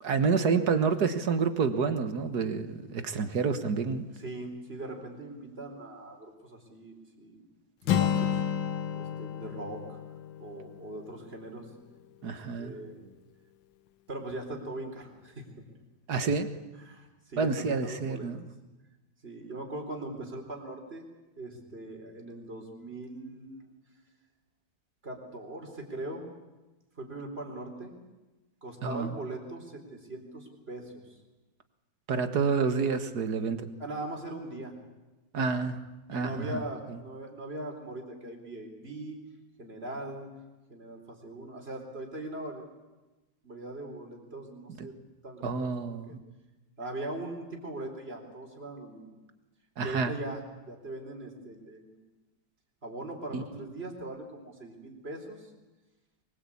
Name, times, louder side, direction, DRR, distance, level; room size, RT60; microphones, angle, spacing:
voice 1, 0.0-4.0 12.2-12.7 16.1-16.5 17.4-18.4 28.8-29.1 32.1-33.7 35.3-35.8 36.1-36.6 44.8-44.9 45.4-46.2 49.8-50.1 53.3-53.4, right 5 dB, 60° right, 9 dB, 1.9 m, -28 dB
voice 2, 4.1-7.4 7.8-8.4 9.0-10.0 10.4-11.7 12.2-13.0 14.1-15.5 16.8-18.3 19.2-21.1 21.4-23.7 25.0-26.3 27.0-28.0 28.6-31.2 33.8-34.8 36.1-39.2 39.6-40.3 40.7-42.7 43.4-45.0 45.2-46.1 46.8-49.1 49.8-52.0 52.8-55.5, right 2 dB, 30° right, 2 dB, 4.2 m, -40 dB
Acoustic guitar, 7.8-11.8, left 9 dB, 85° left, 1.8 m, -31 dB
24.0 x 21.5 x 8.6 m, 1.1 s
omnidirectional pair, 2.0 m